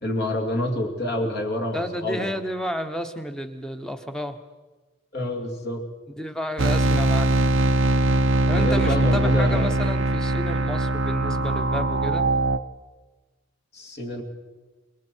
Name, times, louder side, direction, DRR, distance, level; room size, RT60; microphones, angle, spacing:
voice 1, 0.0-2.3 5.1-5.8 8.5-9.8 13.7-14.2, left 1 dB, 50° left, 1 dB, 2.6 m, -27 dB
voice 2, 1.7-4.4 6.1-7.4 8.5-12.3, equal, 5° left, 7 dB, 1.1 m, -31 dB
sound 1, 6.6-12.6, right 2 dB, 65° right, 0.6 m, -21 dB
27.0 x 22.0 x 4.6 m, 1.3 s
head